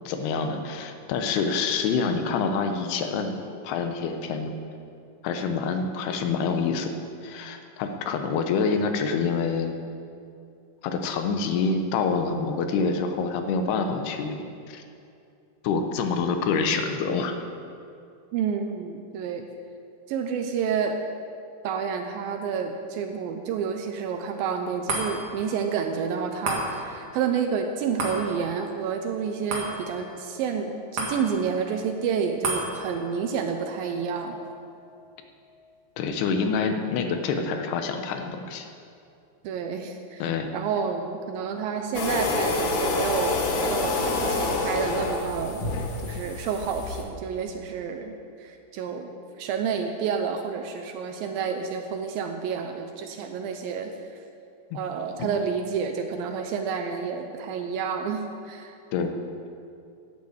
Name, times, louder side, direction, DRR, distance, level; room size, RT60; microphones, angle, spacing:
voice 1, 0.1-3.4 3.6-4.6 5.2-6.9 7.2-9.7 10.8-14.8 15.6-17.3 36.0-38.7 40.2-40.5 54.7-54.8 55.2-55.3 58.9-59.1, left 5 dB, 80° left, 6 dB, 2.9 m, -26 dB
voice 2, 18.3-19.5 20.1-21.0 21.6-34.4 39.4-40.2 40.5-49.1 49.4-53.9 54.7-58.8, right 6 dB, 80° right, 5 dB, 2.3 m, -29 dB
sound 1, 24.9-37.5 37.9-38.0, right 2 dB, 55° right, 2.7 m, -36 dB
sound 2, 41.9-47.0, left 3 dB, 60° left, 2.5 m, -27 dB
11.0 x 8.5 x 8.0 m, 2.5 s
omnidirectional pair, 4.6 m